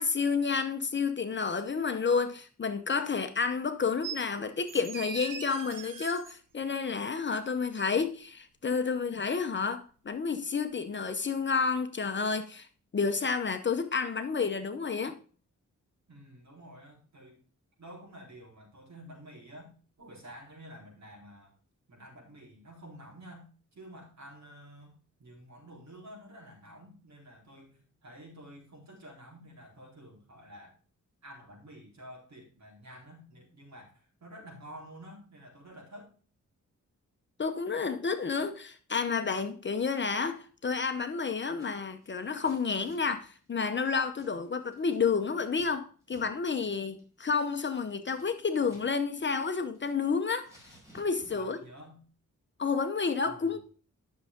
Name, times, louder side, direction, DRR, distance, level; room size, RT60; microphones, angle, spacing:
voice 1, 0.0-12.7 12.9-15.2 37.4-50.5 50.9-51.6 52.6-53.6, left 5 dB, 35° left, 0.9 m, -30 dB
sound 1, 4.0-4.2 4.7-6.3 7.8-7.9, right 7 dB, 75° right, 1.2 m, -41 dB
voice 2, 16.1-17.4 17.8-21.5 21.9-30.8 31.2-36.1 51.3-52.0 53.2-53.6, equal, 60° right, 4.3 m, -50 dB
Scissors, 41.4-41.7 42.0-45.7 46.0-46.2 46.5-46.7 47.0-48.9 49.2-50.1 50.4-51.5, right 1 dB, 10° right, 5.5 m, -59 dB
11.0 x 6.6 x 3.6 m
wide cardioid pair, 115°, 32 cm